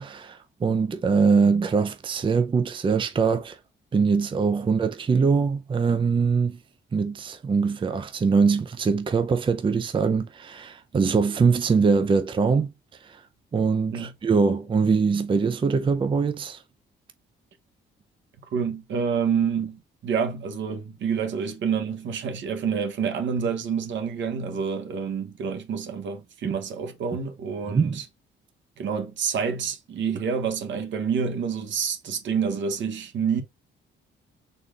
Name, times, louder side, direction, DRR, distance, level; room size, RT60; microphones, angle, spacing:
voice 1, 0.0-3.6 3.9-6.6 6.9-12.7 13.0-13.2 13.5-16.6 26.4-26.5 27.7-28.0, right 5 dB, 25° right, 0.5 m, -23 dB
voice 2, 18.5-28.1 28.8-33.4, right 6 dB, 70° right, 1.2 m, -28 dB
4.2 x 2.4 x 3.3 m
cardioid pair, 90°, 20 cm